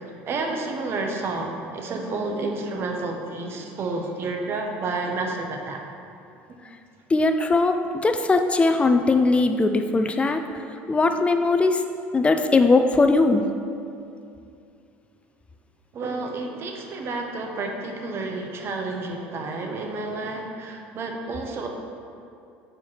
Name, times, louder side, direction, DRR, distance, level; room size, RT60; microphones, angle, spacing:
voice 1, 0.0-5.8 15.9-21.7, right 3 dB, 45° right, 2 dB, 0.9 m, -30 dB
voice 2, 7.1-10.4 10.9-11.8 12.1-13.4, left 3 dB, 20° left, 6 dB, 0.4 m, -20 dB
4.7 x 4.4 x 5.6 m, 2.5 s
supercardioid pair, 90°, 6 cm